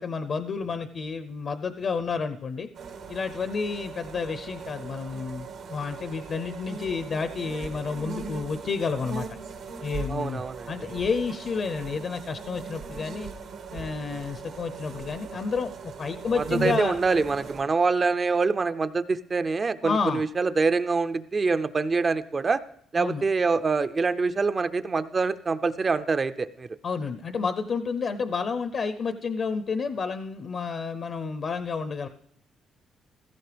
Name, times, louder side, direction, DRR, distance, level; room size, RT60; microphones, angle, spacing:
voice 1, 0.0-2.7 3.1-9.3 9.8-10.4 10.7-13.3 13.7-17.0 19.8-20.2 23.0-23.2 26.8-32.1, left 5 dB, 55° left, 10 dB, 0.6 m, -30 dB
sound 1, 2.7-17.6, right 5 dB, 75° right, 1.6 m, -39 dB
voice 2, 10.1-10.7 16.3-22.6 22.9-26.7, right 4 dB, 35° right, 13 dB, 0.5 m, -25 dB
16.0 x 14.5 x 3.4 m, 0.70 s
cardioid pair, 90°, 0 cm